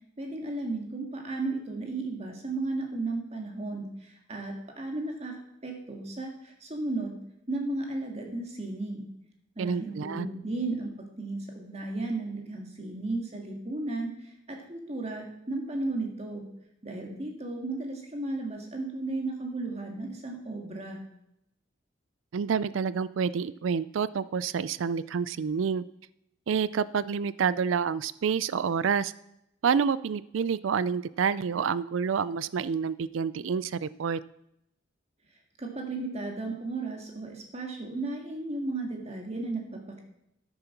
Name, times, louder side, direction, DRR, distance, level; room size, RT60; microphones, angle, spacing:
voice 1, 0.2-7.2 7.5-9.1 9.6-16.5 16.8-21.0 35.6-40.0, right 2 dB, 35° right, 1 dB, 1.9 m, -34 dB
voice 2, 9.6-10.3 22.3-25.8 26.5-29.1 29.6-34.2, right 6 dB, 80° right, 17 dB, 0.4 m, -28 dB
13.0 x 6.8 x 5.9 m, 0.80 s
head